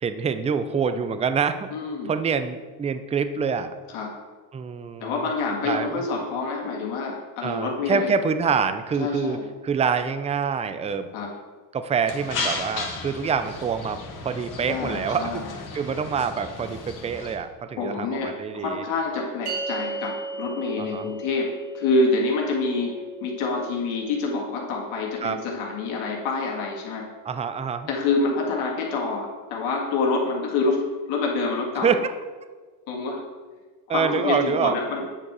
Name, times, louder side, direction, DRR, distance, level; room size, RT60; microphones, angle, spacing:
voice 1, 0.0-1.7 2.1-3.7 4.5-5.3 5.6-6.0 7.4-9.4 9.6-11.1 11.7-15.4 15.7-18.8 20.9-21.1 25.2-25.4 27.3-27.9 31.8-32.1 33.9-34.8, right 6 dB, 15° right, 10 dB, 0.4 m, -26 dB
voice 2, 1.7-2.1 3.9-4.2 5.0-8.1 9.0-9.5 11.1-11.3 14.7-15.6 17.8-22.9 23.2-27.1 27.9-32.0 32.9-33.2 33.9-35.0, left 3 dB, 75° left, -1 dB, 2.0 m, -27 dB
sound 1, 12.1-17.4, left 3 dB, 40° left, 1.6 m, -34 dB
sound 2, 19.5-26.0, right 3 dB, 55° right, 1.4 m, -37 dB
8.9 x 4.6 x 4.7 m, 1.4 s
supercardioid pair, 95°, 48 cm